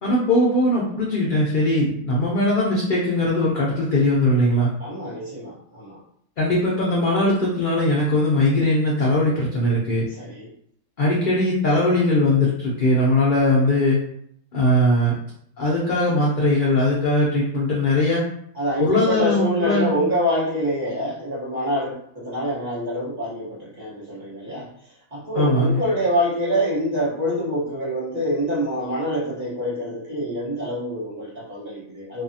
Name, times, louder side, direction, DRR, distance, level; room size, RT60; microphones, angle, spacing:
voice 1, 0.0-4.7 6.4-10.1 11.0-14.0 14.5-15.2 15.6-18.2 18.8-20.0 25.3-25.8, left 1 dB, 70° left, -5 dB, 0.4 m, -20 dB
voice 2, 4.8-6.0 10.1-10.5 18.5-24.7 25.1-32.2, equal, 30° right, -9 dB, 0.9 m, -26 dB
2.7 x 2.3 x 2.6 m, 0.67 s
omnidirectional pair, 1.5 m